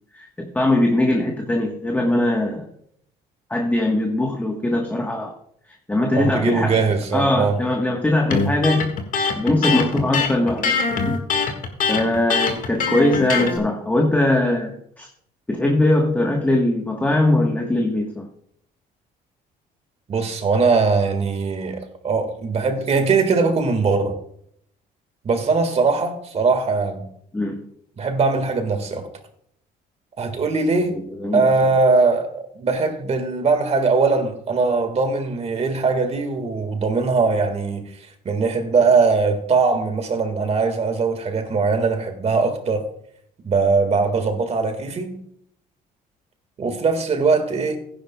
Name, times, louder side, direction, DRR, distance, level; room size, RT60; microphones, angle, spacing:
voice 1, 0.1-2.7 3.5-5.3 5.9-6.8 7.1-8.9 9.4-10.8 11.1-11.2 11.9-15.1 15.5-18.3 27.3-27.7 30.9-31.5, left 1 dB, 10° left, 1 dB, 1.2 m, -21 dB
voice 2, 6.1-7.6 20.1-24.2 25.2-27.1 28.0-29.1 30.2-31.0 31.3-37.9 38.2-42.9 43.4-45.2 46.6-47.8, right 4 dB, 40° right, 7 dB, 1.7 m, -20 dB
Electric guitar, 8.3-13.6, left 5 dB, 55° left, 1.7 m, -22 dB
15.5 x 10.5 x 2.3 m, 0.68 s
cardioid pair, 110°, 17 cm